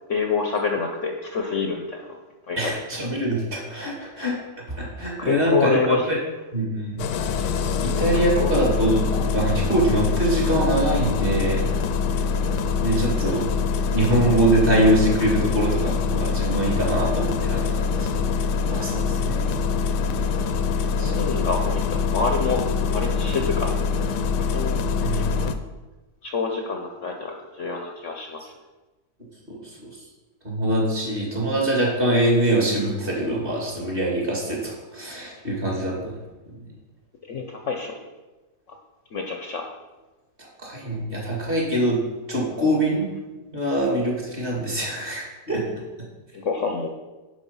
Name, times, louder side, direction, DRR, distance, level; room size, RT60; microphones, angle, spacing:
voice 1, 0.1-2.0 2.5-2.6 5.2-6.1 8.4-8.6 20.7-22.6 22.9-23.8 24.5-24.8 25.1-25.2 26.2-28.4 37.3-37.9 39.1-39.7 46.3-46.9, left 5 dB, 55° left, 3 dB, 0.9 m, -27 dB
voice 2, 2.6-4.4 4.7-6.2 6.5-7.0 7.8-11.7 12.8-13.5 13.9-18.3 18.7-19.5 21.0-21.1 25.0-25.4 29.5-29.9 30.4-36.1 36.5-36.6 40.4-42.0 42.3-43.1 43.5-45.6, right 1 dB, 30° right, -2 dB, 2.3 m, -24 dB
Engine starting, 7.0-25.5, left 5 dB, 80° left, 1.3 m, -24 dB
10.5 x 4.9 x 5.5 m, 1.2 s
omnidirectional pair, 1.8 m